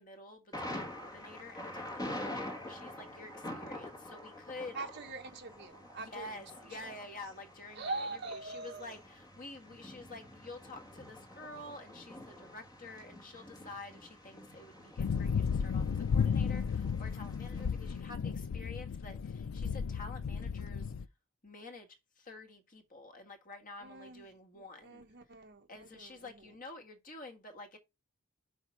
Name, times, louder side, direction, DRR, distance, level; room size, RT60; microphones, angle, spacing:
voice 1, 0.0-4.9 6.0-20.9 21.4-25.1 25.7-27.8, left 2 dB, 40° left, 1.7 m, -49 dB
Thunder, 0.5-18.0, left 1 dB, 15° left, 1.7 m, -47 dB
voice 2, 4.7-6.4 7.7-8.9 23.8-26.4, right 3 dB, 55° right, 1.6 m, -43 dB
sound 1, 15.0-21.0, left 6 dB, 70° left, 0.4 m, -33 dB
5.6 x 5.1 x 6.2 m
head